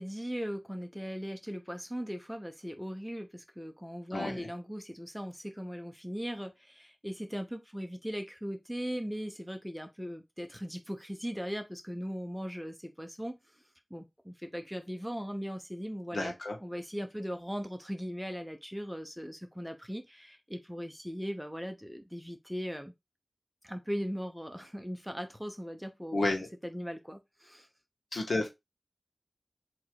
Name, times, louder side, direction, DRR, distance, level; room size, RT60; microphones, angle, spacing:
voice 1, 0.0-13.4 13.9-16.3 16.6-22.9 23.6-26.2 26.6-27.7, equal, ahead, 0.8 m, -39 dB
voice 2, 4.1-4.5 16.1-16.6 26.1-26.5 28.1-28.5, left 2 dB, 90° left, 1.2 m, -31 dB
3.8 x 2.9 x 4.5 m
wide cardioid pair, 65°, 0 cm